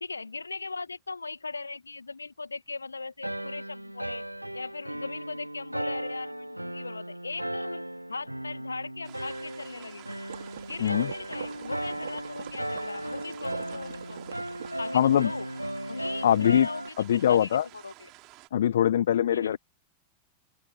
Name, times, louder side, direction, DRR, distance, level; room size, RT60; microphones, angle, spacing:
voice 1, 0.0-4.2 4.5-10.0 10.7-14.4 14.8-15.5 15.9-18.1 19.3-19.6, left 3 dB, 80° left, 2.1 m, -39 dB
sound 1, 3.2-16.9, right 1 dB, 85° right, 0.4 m, -36 dB
sound 2, 9.0-18.5, right 23 dB, 40° right, 4.1 m, -52 dB
sound 3, 10.3-14.7, right 8 dB, 65° right, 4.5 m, -43 dB
voice 2, 10.8-11.1 14.9-15.3 16.2-16.7 17.1-17.6 18.5-19.6, left 10 dB, 60° left, 0.8 m, -22 dB
figure-of-eight pair, 90°, 0 cm